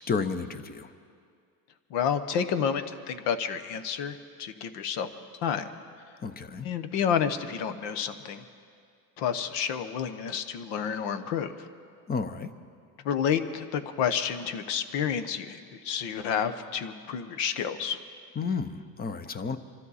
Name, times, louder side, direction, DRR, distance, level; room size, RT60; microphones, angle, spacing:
voice 1, 0.1-0.9 6.2-6.7 12.1-12.5 18.4-19.6, left 5 dB, 20° left, 11 dB, 0.6 m, -31 dB
voice 2, 1.9-5.1 5.4-5.7 6.6-8.4 9.2-11.5 13.0-18.0, left 7 dB, 65° left, 10 dB, 1.1 m, -30 dB
25.0 x 13.0 x 4.2 m, 2.3 s
cardioid pair, 125°, 45 cm